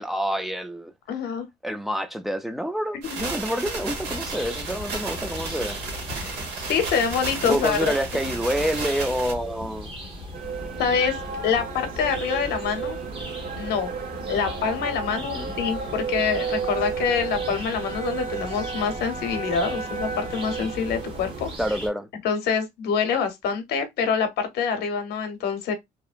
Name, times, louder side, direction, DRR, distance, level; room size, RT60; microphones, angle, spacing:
voice 1, 0.0-0.9 1.6-5.8 7.4-9.9 15.2-15.5 21.6-22.1, equal, ahead, 0.4 m, -27 dB
voice 2, 1.1-1.5 3.0-3.2 6.1-7.9 10.8-11.2 11.4-13.0 13.6-13.9 14.3-21.5 22.2-25.7, left 6 dB, 70° left, 0.9 m, -26 dB
sound 1, 3.0-9.3, right 4 dB, 85° right, 1.4 m, -33 dB
sound 2, 3.7-21.9, left 1 dB, 35° right, 1.1 m, -38 dB
sound 3, 10.3-21.6, right 5 dB, 50° right, 0.7 m, -33 dB
2.8 x 2.1 x 2.4 m
cardioid pair, 110°, 17 cm